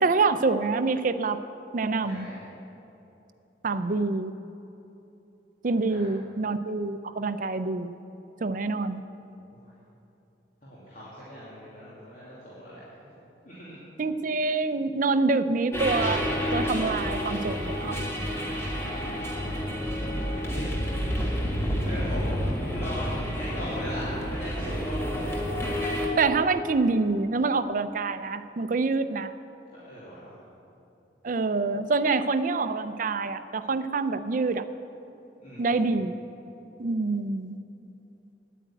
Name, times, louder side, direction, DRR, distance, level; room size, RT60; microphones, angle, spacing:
voice 1, 0.0-1.4 1.7-2.3 3.6-4.3 5.6-7.9 8.4-9.0 14.0-18.0 26.2-29.3 31.2-34.7 35.6-36.2 36.8-37.6, right 3 dB, 45° right, 11 dB, 0.5 m, -26 dB
voice 2, 2.0-2.4 5.9-6.1 8.4-8.6 9.6-9.7 10.6-13.1 13.4-13.8 18.9-19.3 20.4-21.1 21.8-22.4 22.7-25.4 29.7-30.3 35.4-36.0, equal, 45° left, -10 dB, 2.7 m, -40 dB
sound 1, 15.7-26.1, equal, 15° left, 1.8 m, -29 dB
10.0 x 8.7 x 9.0 m, 3.0 s
head